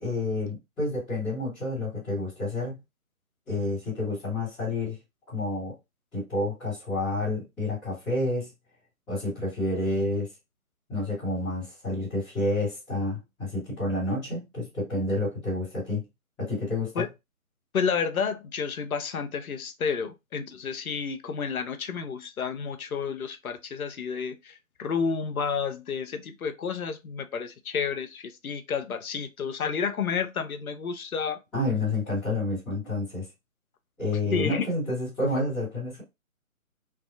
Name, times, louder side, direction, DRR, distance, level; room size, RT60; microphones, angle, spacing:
voice 1, 0.0-2.8 3.5-5.0 5.3-5.7 6.1-8.5 9.1-10.3 10.9-16.0 16.4-17.0 31.5-33.2 34.0-36.0, left 2 dB, 5° left, 1.1 m, -29 dB
voice 2, 17.7-31.4 34.3-34.7, left 6 dB, 80° left, 0.7 m, -30 dB
3.4 x 2.4 x 2.4 m
figure-of-eight pair, 160°, 42 cm